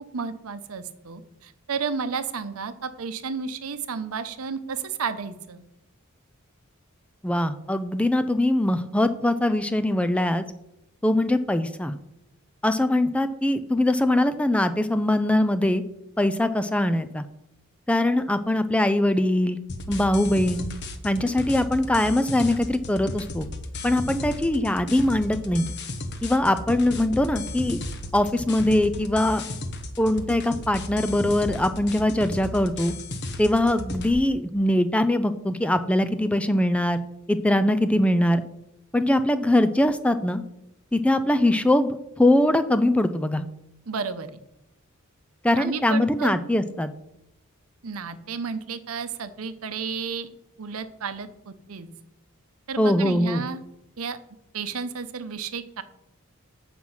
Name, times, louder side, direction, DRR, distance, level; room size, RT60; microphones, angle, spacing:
voice 1, 0.1-5.6 43.9-44.3 45.6-46.4 47.8-50.3 50.6-51.9 52.7-53.6 54.0-54.2 54.5-55.8, right 5 dB, 75° right, 11 dB, 0.7 m, -32 dB
voice 2, 7.2-10.4 11.0-11.9 12.6-15.8 16.2-17.2 17.9-19.6 19.9-20.7 21.0-23.5 23.8-25.7 26.2-27.8 28.1-29.4 30.0-32.9 33.4-37.0 37.3-38.4 38.9-40.4 40.9-43.4 45.4-46.9 52.8-53.4, left 1 dB, 5° left, 10 dB, 0.3 m, -22 dB
sound 1, 19.7-34.1, left 2 dB, 50° left, 1.0 m, -35 dB
7.8 x 6.0 x 5.5 m, 0.84 s
head